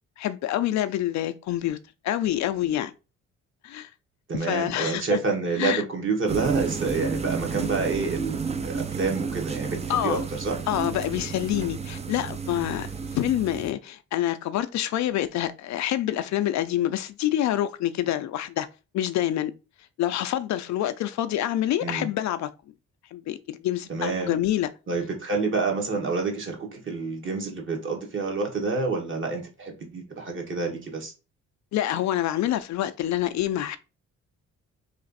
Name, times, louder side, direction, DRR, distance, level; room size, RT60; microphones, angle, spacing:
voice 1, 0.2-1.8 2.0-2.9 3.6-3.9 4.3-5.0 5.6-5.8 9.9-10.3 10.7-12.9 13.1-18.7 18.9-19.5 20.0-22.5 23.1-24.7 31.7-33.8, left 12 dB, 65° left, 0.4 m, -27 dB
voice 2, 4.3-10.6 21.8-22.1 23.9-24.4 24.9-31.1, right 4 dB, 40° right, 1.3 m, -28 dB
sound 1, 6.3-13.7, right 5 dB, 20° right, 0.5 m, -32 dB
3.2 x 2.5 x 3.9 m
cardioid pair, 90°, 30 cm